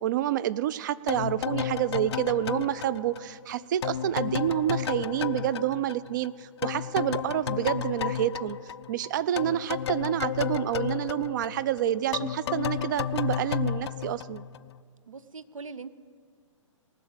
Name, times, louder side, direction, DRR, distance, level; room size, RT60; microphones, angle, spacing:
voice 1, 0.0-8.6 8.9-14.4, right 12 dB, 35° right, 19 dB, 0.4 m, -28 dB
sound 1, 1.1-6.3 6.6-14.8, left 9 dB, 55° left, 0.4 m, -32 dB
voice 2, 15.1-15.9, right 4 dB, 80° right, 15 dB, 0.7 m, -41 dB
19.0 x 6.4 x 8.1 m, 2.1 s
figure-of-eight pair, 130°, 17 cm